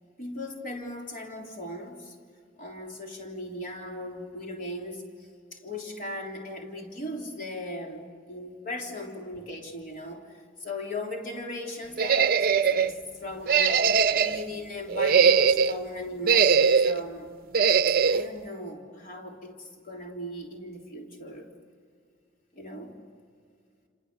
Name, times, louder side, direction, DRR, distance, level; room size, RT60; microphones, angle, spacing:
voice 1, 0.2-2.2 2.6-13.8 14.1-17.3 17.9-21.5 22.5-22.9, left 1 dB, 45° left, 0 dB, 3.5 m, -38 dB
sound 1, 12.0-12.9 13.5-14.4 14.9-15.8 16.2-17.0 17.5-18.2, right 6 dB, 50° right, 0.7 m, -21 dB
30.0 x 27.5 x 6.7 m, 2.2 s
head